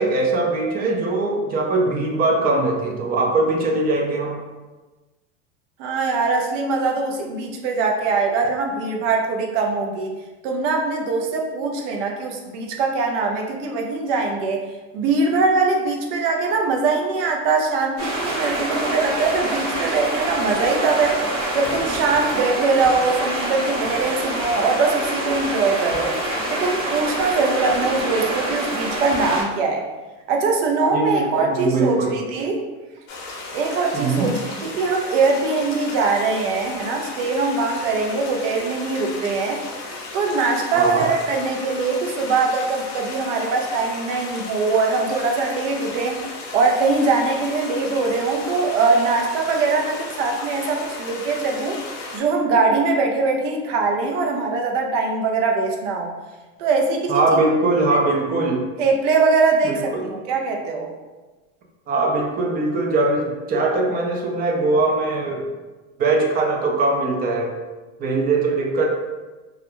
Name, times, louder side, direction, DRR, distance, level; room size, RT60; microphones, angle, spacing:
voice 1, 0.0-4.4 30.9-32.1 33.9-34.3 40.7-41.1 57.1-58.7 59.6-60.1 61.9-65.5 66.0-67.5 68.0-68.9, right 2 dB, 25° right, 1 dB, 0.4 m, -21 dB
voice 2, 5.8-10.1 10.4-14.6 14.9-21.2 21.5-26.1 26.5-29.8 30.3-32.6 33.5-39.6 40.1-46.2 46.5-51.8 52.1-56.1 56.6-57.4 58.8-60.9, right 4 dB, 70° right, 2 dB, 0.6 m, -22 dB
sound 1, 18.0-29.4, right 1 dB, 45° right, 1.0 m, -26 dB
sound 2, 33.1-52.2, left 3 dB, 45° left, 0.7 m, -35 dB
2.4 x 2.1 x 2.9 m, 1.2 s
supercardioid pair, 115°, 38 cm